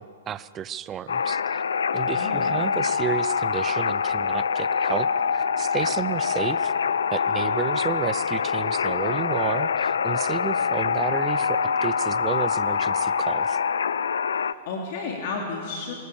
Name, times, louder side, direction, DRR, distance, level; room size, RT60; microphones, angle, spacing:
voice 1, 0.0-1.6 1.9-6.7 7.1-13.6, right 9 dB, 20° right, 16 dB, 0.6 m, -31 dB
sound 1, 1.1-14.5, left 6 dB, 90° left, 0.6 m, -25 dB
voice 2, 2.1-2.5 14.4-15.9, left 4 dB, 55° left, 0 dB, 3.2 m, -32 dB
24.0 x 19.5 x 7.1 m, 2.3 s
hypercardioid pair, 135°, 0 cm